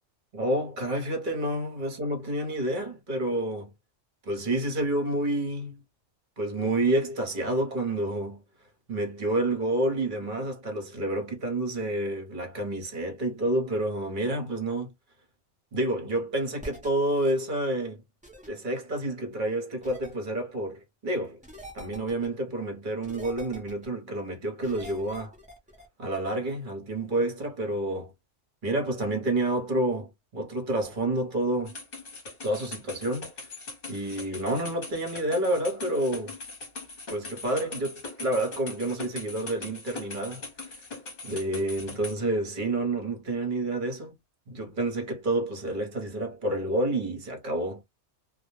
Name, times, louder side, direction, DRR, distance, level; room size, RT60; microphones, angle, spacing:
voice 1, 0.3-3.7 4.3-5.8 6.4-8.4 8.9-14.9 15.7-18.0 18.5-21.4 21.7-25.3 26.0-28.1 28.6-31.7 32.4-33.3 33.9-36.3 37.1-40.7 41.2-44.1 44.5-47.8, right 1 dB, 45° right, 0.9 m, -29 dB
sound 1, 16.6-16.9 18.2-18.5 19.8-20.1 21.4-22.3 23.0-23.9 24.6-25.9, equal, 10° right, 0.5 m, -44 dB
sound 2, 31.7-42.1, left 3 dB, 50° left, 1.0 m, -41 dB
2.3 x 2.1 x 3.0 m
omnidirectional pair, 1.2 m